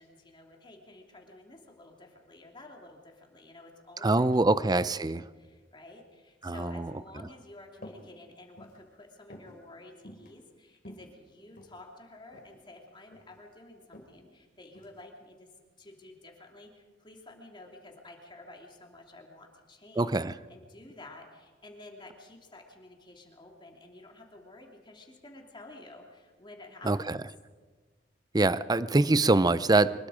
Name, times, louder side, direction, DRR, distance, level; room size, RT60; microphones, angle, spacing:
voice 1, 0.0-15.5 15.8-20.2 20.5-27.2, left 2 dB, 25° left, 1 dB, 3.0 m, -51 dB
voice 2, 4.0-5.2 6.4-6.9 20.0-20.3 26.8-27.2 28.3-29.9, right 2 dB, 20° right, 16 dB, 0.5 m, -24 dB
sound 1, 7.8-8.1 8.4-8.8 9.3-9.6 10.0-10.3 10.7-11.8 12.3-12.6 12.9-13.4 13.9-14.1 14.7-15.0, left 1 dB, 50° left, 3.8 m, -49 dB
25.0 x 21.5 x 5.1 m, 1.4 s
head